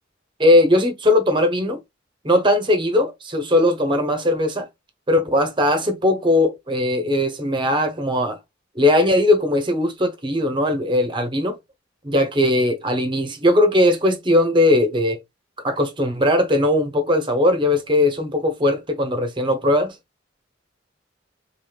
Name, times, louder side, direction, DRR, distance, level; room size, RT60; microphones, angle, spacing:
voice 1, 0.4-1.8 2.2-4.7 5.1-8.4 8.7-11.6 12.0-15.2 15.6-20.0, left 1 dB, 25° right, 0.9 m, -19 dB
3.8 x 3.6 x 2.4 m
head